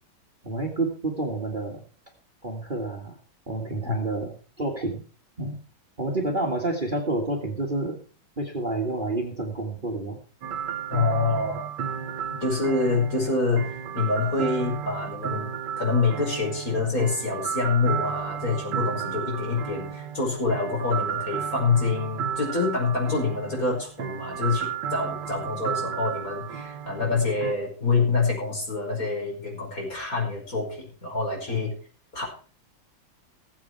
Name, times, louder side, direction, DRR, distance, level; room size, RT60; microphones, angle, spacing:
voice 1, 0.4-1.8 2.4-3.2 3.5-5.0 5.4-5.6 6.0-8.0 8.4-10.2 11.3-11.5 12.3-12.4 31.5-31.6, right 2 dB, 25° right, 2 dB, 2.0 m, -29 dB
sound 1, 10.4-27.5, right 8 dB, 65° right, 1.6 m, -33 dB
voice 2, 10.9-11.6 12.4-15.5 15.8-31.7 32.1-32.2, left 4 dB, 45° left, -1 dB, 5.7 m, -26 dB
19.0 x 8.0 x 4.7 m, 0.40 s
omnidirectional pair, 2.1 m